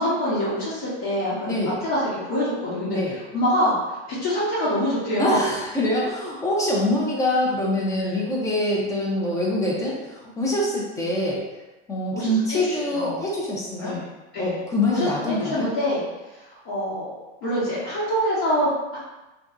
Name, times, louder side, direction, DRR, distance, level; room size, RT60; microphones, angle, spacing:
voice 1, 0.0-1.5 1.8-3.7 4.1-5.4 8.0-8.2 12.1-13.3 13.8-14.1 14.3-14.6 14.9-16.0 16.3-17.2 17.4-19.0, equal, 55° left, -10 dB, 1.1 m, -25 dB
voice 2, 5.2-11.4 11.9-13.9 14.4-15.7, left 1 dB, 10° left, -4 dB, 0.4 m, -25 dB
2.6 x 2.3 x 2.3 m, 1.1 s
hypercardioid pair, 115°, 36 cm